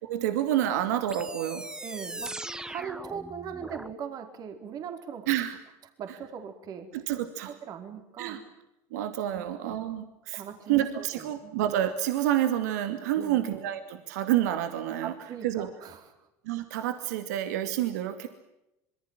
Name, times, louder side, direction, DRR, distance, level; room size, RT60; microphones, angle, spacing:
voice 1, 0.0-1.7 5.3-5.6 6.9-7.5 8.2-8.4 8.9-10.4 10.7-15.1 15.4-15.7 16.5-18.3, right 12 dB, 85° right, 8 dB, 2.5 m, -28 dB
sound 1, 1.1-3.9, right 2 dB, 10° right, 1.2 m, -39 dB
voice 2, 1.8-2.3 2.6-5.3 6.0-6.9 7.5-8.4 9.3-9.5 10.3-11.5 13.1-13.4 15.0-16.1, right 7 dB, 45° right, 6 dB, 4.8 m, -40 dB
27.0 x 23.5 x 7.5 m, 0.89 s
supercardioid pair, 115°, 9 cm